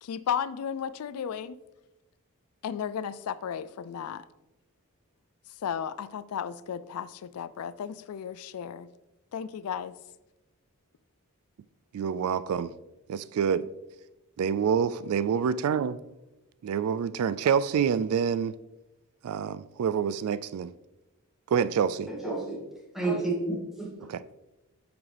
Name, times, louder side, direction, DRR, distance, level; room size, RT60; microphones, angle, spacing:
voice 1, 0.0-1.6 2.6-4.2 5.6-8.9 9.3-9.9, left 8 dB, 85° left, 0.4 m, -34 dB
voice 2, 11.9-12.7 13.1-13.7 14.4-16.0 16.6-18.6 19.2-20.7 21.5-22.1 24.1-24.2, right 7 dB, 80° right, 0.3 m, -27 dB
voice 3, 22.1-22.6 22.9-24.1, right 2 dB, ahead, 2.2 m, -30 dB
8.9 x 6.0 x 3.4 m
head